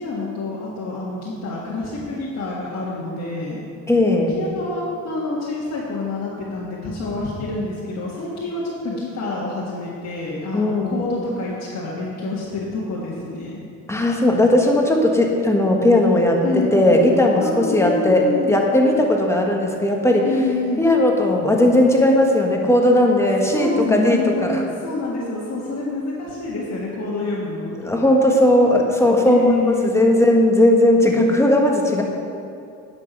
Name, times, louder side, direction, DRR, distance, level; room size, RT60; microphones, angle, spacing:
voice 1, 0.0-3.6 4.3-13.6 16.4-17.0 17.4-18.6 20.2-20.8 23.5-27.8 29.3-29.9, left 2 dB, 60° left, -6 dB, 1.7 m, -27 dB
voice 2, 3.9-4.4 10.5-11.0 13.9-20.3 20.8-24.6 27.8-29.5 29.8-32.0, left 1 dB, 10° left, 0 dB, 1.4 m, -17 dB
9.7 x 6.2 x 6.1 m, 2.6 s
cardioid pair, 90°, 30 cm